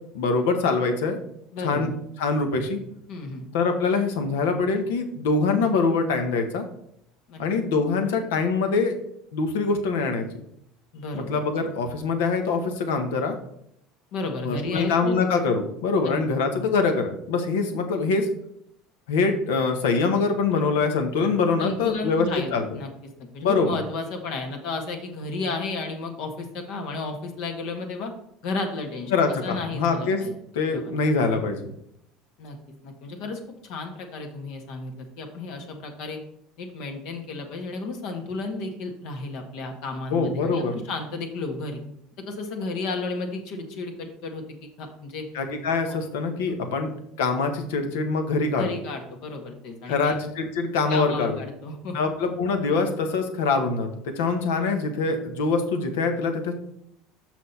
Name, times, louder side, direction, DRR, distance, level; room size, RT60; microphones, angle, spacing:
voice 1, 0.1-1.2 1.6-1.9 2.2-2.8 3.5-6.6 7.4-9.0 9.3-10.3 11.1-13.4 14.4-18.3 19.1-22.3 22.5-22.7 23.4-23.8 29.1-30.2 30.5-31.7 40.1-40.8 45.3-46.9 47.2-48.7 49.9-51.4 51.9-56.5, left 4 dB, 85° left, 6 dB, 1.2 m, -24 dB
voice 2, 1.5-1.9 3.1-3.5 7.3-7.4 10.9-11.4 14.1-15.2 16.0-16.1 20.5-20.7 21.6-22.9 23.2-28.1 28.4-30.3 30.7-30.9 32.4-32.6 32.8-36.2 36.6-41.8 42.3-45.3 45.9-46.0 46.6-46.7 48.5-50.2 50.9-52.0, left 3 dB, 70° left, 4 dB, 1.6 m, -33 dB
6.3 x 6.2 x 4.2 m, 0.73 s
supercardioid pair, 100°, 0 cm